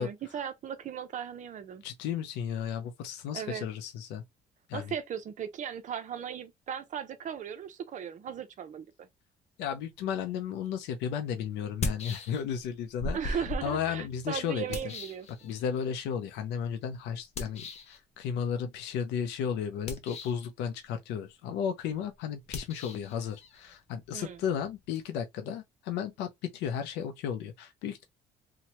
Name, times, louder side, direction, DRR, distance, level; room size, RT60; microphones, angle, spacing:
voice 1, 0.0-1.8 3.3-3.7 4.7-9.1 13.1-15.5 24.1-24.4, right 8 dB, 45° right, 0.6 m, -37 dB
voice 2, 1.8-4.2 4.7-4.9 9.6-14.8 15.4-28.0, left 8 dB, 90° left, 0.5 m, -34 dB
sound 1, 10.6-10.7 11.6-12.7 13.0-15.9 17.4-18.0 19.7-20.5 22.5-25.0, left 3 dB, 40° left, 0.6 m, -38 dB
2.8 x 2.2 x 2.9 m
cardioid pair, 110°, 17 cm